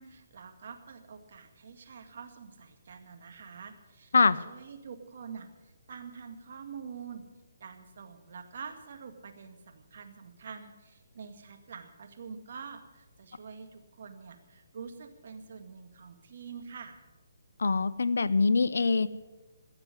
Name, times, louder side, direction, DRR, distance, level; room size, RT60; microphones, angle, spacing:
voice 1, 0.0-7.2 7.6-17.0, right 6 dB, 55° right, 6 dB, 1.9 m, -46 dB
voice 2, 17.6-19.1, left 4 dB, 75° left, 16 dB, 0.7 m, -24 dB
16.0 x 6.9 x 9.9 m, 1.2 s
hypercardioid pair, 150°, 0 cm